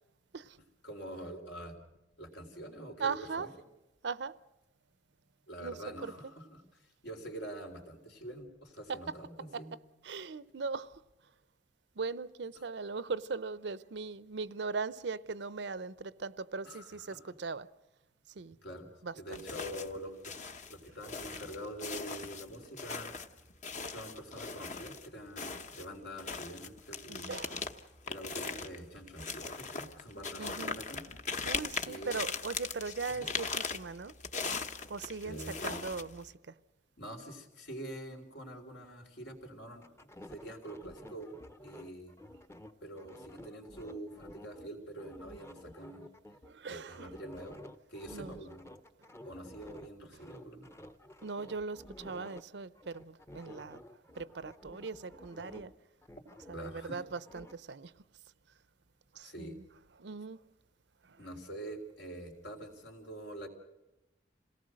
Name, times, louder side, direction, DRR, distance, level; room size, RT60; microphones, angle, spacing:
voice 1, 0.8-1.8 2.2-3.5 5.5-9.7 16.6-17.2 18.6-23.1 23.8-27.4 28.0-31.0 31.8-32.2 33.2-33.3 35.2-35.9 37.0-39.9 40.3-41.3 41.6-42.2 42.8-46.1 46.7-47.6 47.9-48.6 49.2-50.7 56.5-57.0 59.2-59.6 61.2-63.5, right 1 dB, 75° left, 3.8 m, -45 dB
voice 2, 3.0-3.5 4.0-4.4 5.6-6.1 8.9-9.0 9.5-9.6 10.0-11.0 12.0-17.7 18.3-18.6 19.0-19.4 27.1-27.7 30.4-30.8 31.4-34.1 34.9-35.4 35.6-36.5 46.4-47.1 48.1-48.4 51.2-53.8 54.1-55.7 56.5-57.9 59.1-59.6 60.0-60.4 61.0-61.3, right 4 dB, 75° right, 0.7 m, -39 dB
sound 1, 19.3-20.0 20.2-25.1 25.4-36.3, left 4 dB, 40° left, 1.0 m, -39 dB
sound 2, 39.8-44.7 45.0-49.9 50.2-52.4 52.8-55.8 56.0-57.5, left 1 dB, 15° left, 0.8 m, -52 dB
27.0 x 18.0 x 6.4 m
head